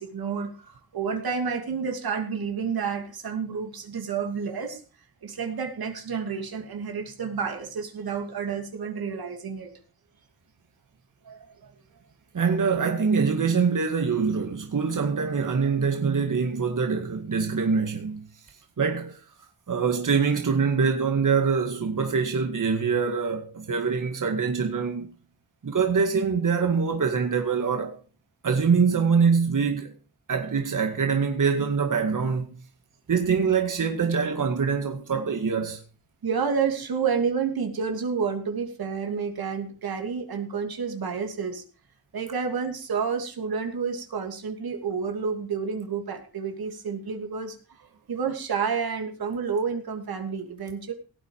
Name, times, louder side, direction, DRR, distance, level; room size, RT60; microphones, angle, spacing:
voice 1, 0.0-4.8 5.2-9.7 11.2-11.7 36.2-41.6 42.1-47.6 48.1-50.9, right 6 dB, 80° right, 2.8 m, -30 dB
voice 2, 12.3-18.2 18.8-19.2 19.7-25.1 25.6-28.0 28.4-29.9 30.3-32.5 33.1-35.8, right 5 dB, 60° right, 2.1 m, -24 dB
17.5 x 8.7 x 4.9 m
cardioid pair, 60°, 36 cm